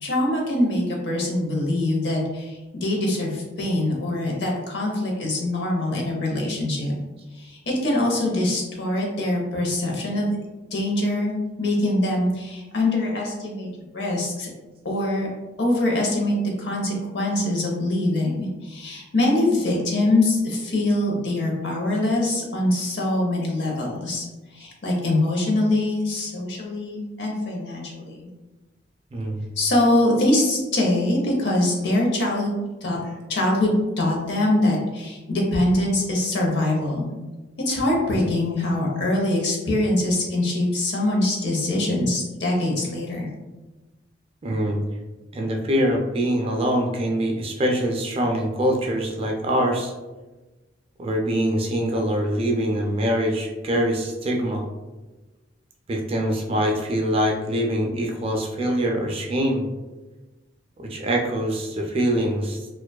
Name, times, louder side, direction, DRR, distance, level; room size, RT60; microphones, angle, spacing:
voice 1, 0.0-7.0 7.3-10.3 10.7-14.5 14.8-15.3 15.6-24.2 24.5-28.2 29.6-32.5 32.8-37.1 37.7-43.3, left 1 dB, 60° left, -1 dB, 0.6 m, -23 dB
voice 2, 29.1-29.5 44.4-44.8 45.3-49.9 51.0-54.6 55.9-59.6 60.8-62.6, equal, 30° right, 1 dB, 0.3 m, -24 dB
2.4 x 2.2 x 2.2 m, 1.1 s
head